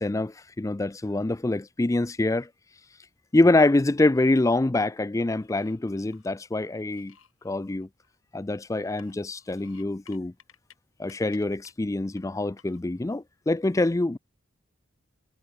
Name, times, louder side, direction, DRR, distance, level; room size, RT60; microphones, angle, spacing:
voice 1, 0.0-2.5 3.3-7.1 7.4-7.9 8.3-10.3 11.0-14.2, left 2 dB, 15° left, 0.4 m, -25 dB
sound 1, 3.7-4.4 4.8-6.3 6.8-8.4 8.9-10.8 11.0-11.7 12.2-12.3 12.6-13.1, left 8 dB, 85° left, 7.5 m, -59 dB
head